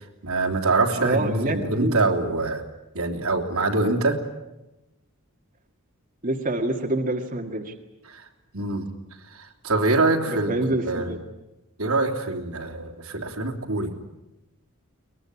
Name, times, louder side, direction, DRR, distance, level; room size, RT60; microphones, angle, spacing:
voice 1, 0.2-2.6 2.9-4.2 8.1-8.3 8.5-8.9 9.3-10.5 10.9-11.1 11.8-14.0, right 2 dB, 80° right, 3 dB, 3.3 m, -24 dB
voice 2, 0.9-2.0 6.2-7.7 10.3-11.2, right 2 dB, 40° right, 2 dB, 1.9 m, -26 dB
22.5 x 21.5 x 9.7 m, 0.97 s
head